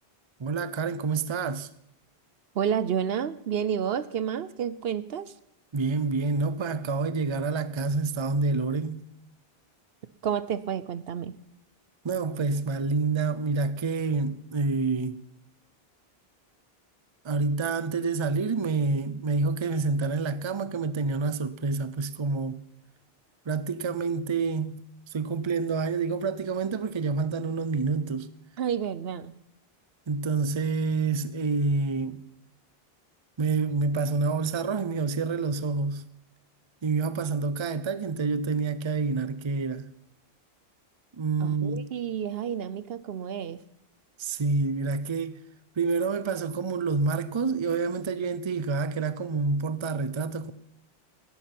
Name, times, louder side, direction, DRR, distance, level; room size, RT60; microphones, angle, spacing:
voice 1, 0.4-1.7 5.7-9.1 12.0-15.2 17.2-22.6 23.5-24.8 25.1-28.3 30.1-32.3 33.4-36.1 36.8-39.9 41.1-41.9 44.2-45.4 45.8-50.5, right 4 dB, 30° right, 0.7 m, -28 dB
voice 2, 2.5-5.3 10.2-11.3 28.6-29.3 41.4-43.6, right 8 dB, 70° right, 0.9 m, -30 dB
11.5 x 10.5 x 9.3 m
omnidirectional pair, 1.0 m